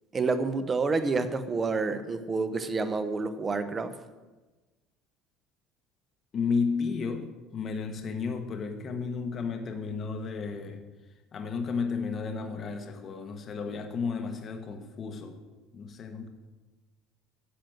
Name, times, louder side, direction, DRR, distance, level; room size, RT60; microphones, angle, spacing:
voice 1, 0.1-3.9, right 4 dB, 20° right, 11 dB, 0.8 m, -28 dB
voice 2, 6.3-10.8 11.3-15.4 15.7-16.3, left 5 dB, 30° left, 5 dB, 1.0 m, -33 dB
10.5 x 7.5 x 7.7 m, 1.2 s
cardioid pair, 170°, 0 cm